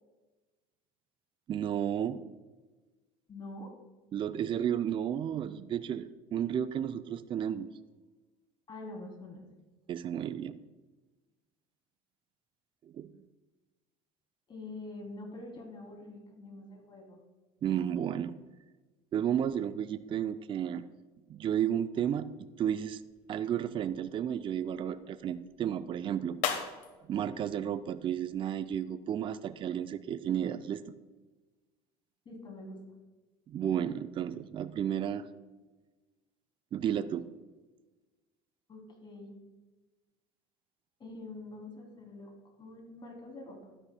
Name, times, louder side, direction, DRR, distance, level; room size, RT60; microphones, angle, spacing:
voice 1, 1.5-2.2 4.1-7.7 9.9-10.6 13.0-13.1 17.6-18.3 19.1-20.8 21.3-23.0 23.3-26.4 27.1-30.8 33.5-35.2 36.7-37.3, right 9 dB, 40° right, 12 dB, 0.5 m, -32 dB
voice 2, 3.3-3.7 8.7-9.4 14.5-17.2 32.2-32.8 38.7-39.4 41.0-42.3 42.6-43.7, left 2 dB, 35° left, 1 dB, 3.0 m, -45 dB
sound 1, 22.9-28.7, left 8 dB, 65° left, 1.1 m, -42 dB
12.0 x 9.7 x 2.2 m, 1.2 s
supercardioid pair, 80°, 13 cm